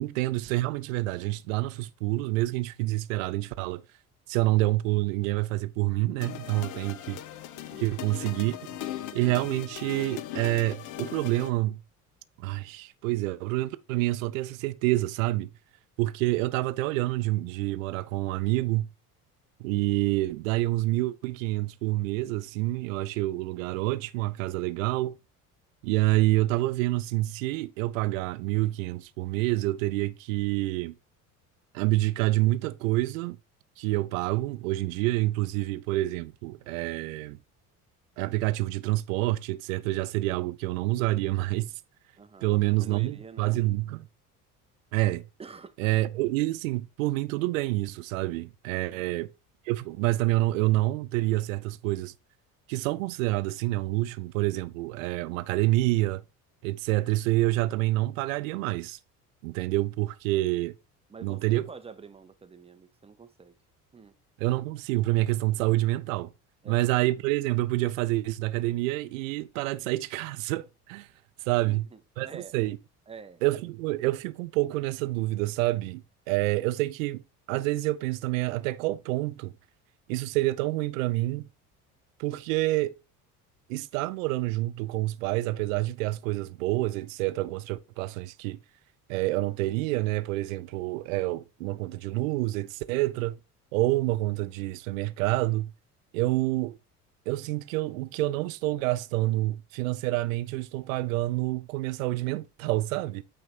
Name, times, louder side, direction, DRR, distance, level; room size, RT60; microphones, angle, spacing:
voice 1, 0.0-3.8 4.3-7.2 7.8-8.8 9.1-11.8 12.4-15.5 16.0-18.9 19.6-25.2 25.8-31.0 31.7-33.4 33.8-37.4 38.2-41.7 42.4-44.1 44.9-45.3 45.8-49.3 49.6-52.1 52.7-56.2 56.6-59.0 59.4-60.8 61.2-61.7 64.4-66.3 66.7-71.1 71.4-71.8 72.2-72.8 73.4-77.2 77.5-79.5 80.1-81.5 82.2-82.9 83.7-88.6 89.1-93.4 93.7-95.7 96.1-96.8 97.3-103.2, right 18 dB, 60° right, 0.6 m, -27 dB
sound 1, 6.2-11.5, left 12 dB, 40° left, 0.7 m, -39 dB
voice 2, 6.4-6.8 7.7-7.9 42.2-43.5 45.4-45.8 61.1-63.5 63.9-64.2 66.6-66.9 71.6-72.6 73.1-73.4 92.9-93.0, right 5 dB, 15° right, 0.7 m, -47 dB
8.6 x 3.2 x 4.3 m
figure-of-eight pair, 60°, 46 cm